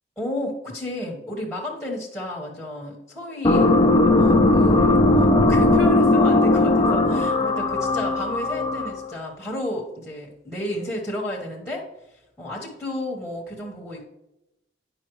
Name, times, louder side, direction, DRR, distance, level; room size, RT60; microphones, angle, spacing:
voice 1, 0.2-3.7 4.1-11.8 12.4-14.0, left 1 dB, ahead, -2 dB, 1.3 m, -32 dB
sound 1, 3.4-9.1, left 2 dB, 25° left, 0.6 m, -18 dB
9.4 x 5.5 x 3.1 m, 0.89 s
head